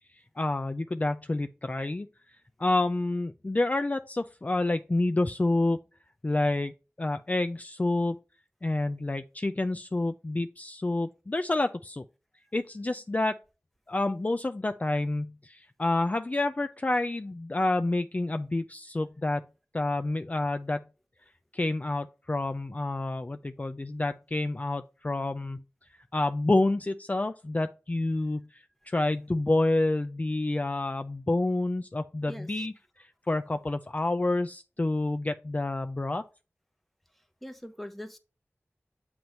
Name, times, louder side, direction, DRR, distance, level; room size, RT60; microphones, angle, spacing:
voice 1, 0.1-5.8 6.2-6.7 7.0-8.2 8.6-12.0 12.5-13.4 13.9-19.4 19.7-20.8 21.5-25.6 25.9-36.3, left 2 dB, 30° left, 0.4 m, -28 dB
voice 2, 32.3-32.7 37.1-38.2, equal, ahead, 1.0 m, -43 dB
7.8 x 2.9 x 5.2 m
wide cardioid pair, 60°, 5 cm